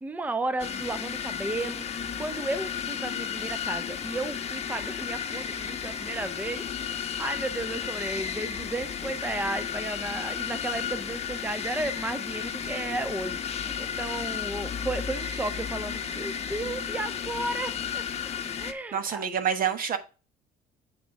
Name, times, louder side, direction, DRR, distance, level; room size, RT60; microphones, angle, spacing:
voice 1, 0.0-18.0 18.6-19.3, right 2 dB, 10° right, 0.5 m, -34 dB
sound 1, 0.6-18.7, left 7 dB, 40° left, 0.9 m, -33 dB
voice 2, 18.9-20.0, right 8 dB, 55° right, 1.3 m, -27 dB
8.0 x 3.8 x 5.8 m
cardioid pair, 110°, 17 cm